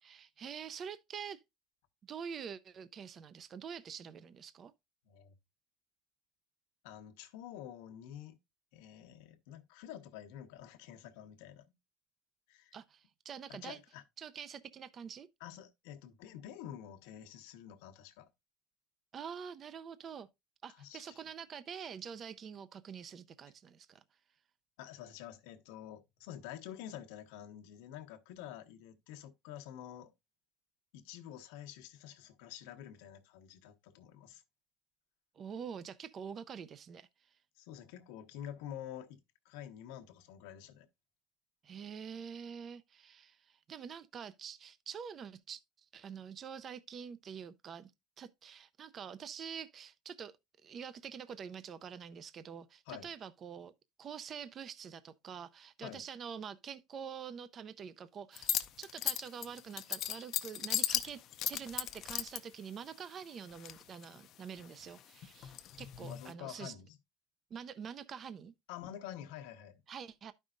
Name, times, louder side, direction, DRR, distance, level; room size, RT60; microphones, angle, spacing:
voice 1, 0.0-1.4 2.1-4.7 12.7-13.8 14.2-15.3 19.1-20.3 20.6-24.0 35.3-37.4 41.6-45.6 45.9-47.9 48.2-50.3 50.6-53.7 54.0-58.5 58.8-61.2 61.5-66.7 67.5-68.5 69.9-70.3, right 7 dB, 35° right, 0.5 m, -46 dB
voice 2, 6.8-8.4 8.7-11.6 12.5-12.7 13.5-14.0 15.4-18.3 20.8-21.2 24.8-30.1 30.9-34.4 37.6-39.2 39.4-40.9 52.9-53.1 55.8-56.0 66.0-67.0 68.7-69.8, left 10 dB, 85° left, 1.1 m, -48 dB
sound 1, 58.4-62.4 63.4-64.2 64.6-66.3, left 11 dB, 50° left, 0.5 m, -36 dB
12.0 x 5.4 x 2.5 m
cardioid pair, 135°, 0 cm